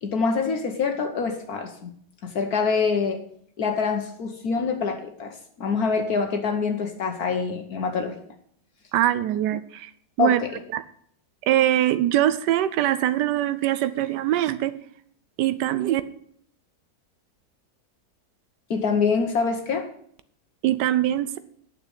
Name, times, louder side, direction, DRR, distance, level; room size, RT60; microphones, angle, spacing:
voice 1, 0.0-1.9 2.2-3.2 3.6-8.2 10.2-10.6 18.7-19.9, left 5 dB, 65° left, 4 dB, 1.5 m, -25 dB
voice 2, 8.9-9.9 10.2-10.4 10.7-10.8 11.5-14.7 15.4-16.0 20.6-21.4, right 12 dB, 85° right, 13 dB, 1.2 m, -22 dB
9.0 x 6.7 x 8.0 m, 0.64 s
omnidirectional pair, 1.8 m